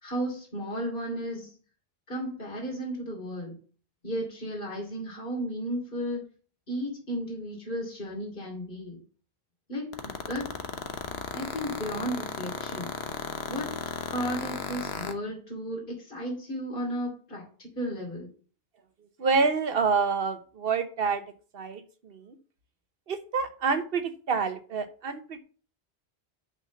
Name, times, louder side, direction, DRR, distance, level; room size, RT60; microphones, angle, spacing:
voice 1, 0.0-1.5 2.1-3.6 4.0-6.2 6.7-9.0 9.7-10.5 11.3-12.9 13.5-13.8 14.1-18.3, equal, 55° left, -2 dB, 2.9 m, -34 dB
sound 1, 9.9-15.1, left 6 dB, 80° left, 1.2 m, -34 dB
voice 2, 19.2-21.2 21.5-22.3 23.1-25.4, right 5 dB, 65° right, 10 dB, 1.2 m, -27 dB
6.0 x 5.7 x 7.1 m, 0.41 s
omnidirectional pair, 1.0 m